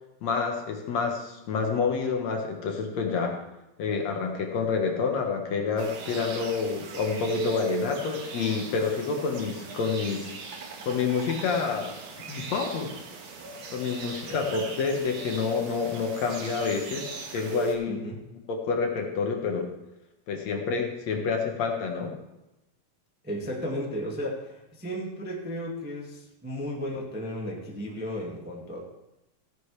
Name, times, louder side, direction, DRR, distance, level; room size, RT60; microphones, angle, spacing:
voice 1, 0.2-3.4 3.8-10.3 10.9-11.9 12.3-12.9 13.7-18.0 18.5-19.7 20.3-22.1, left 5 dB, 65° left, 2 dB, 2.4 m, -28 dB
sound 1, 5.8-17.8, right 5 dB, 75° right, 2.9 m, -38 dB
voice 2, 17.9-18.2 23.2-28.8, equal, 5° right, -2 dB, 1.1 m, -34 dB
15.0 x 10.5 x 3.3 m, 0.95 s
omnidirectional pair, 3.6 m